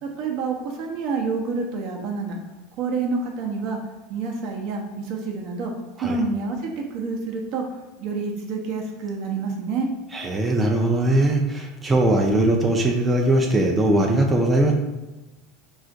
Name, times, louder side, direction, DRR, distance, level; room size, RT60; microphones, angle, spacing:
voice 1, 0.0-2.4 2.8-3.8 4.1-9.9, right 4 dB, 60° right, 2 dB, 0.6 m, -28 dB
voice 2, 10.1-14.7, right 1 dB, 20° right, 1 dB, 0.4 m, -20 dB
2.4 x 2.4 x 3.9 m, 1.1 s
hypercardioid pair, 100°, 0 cm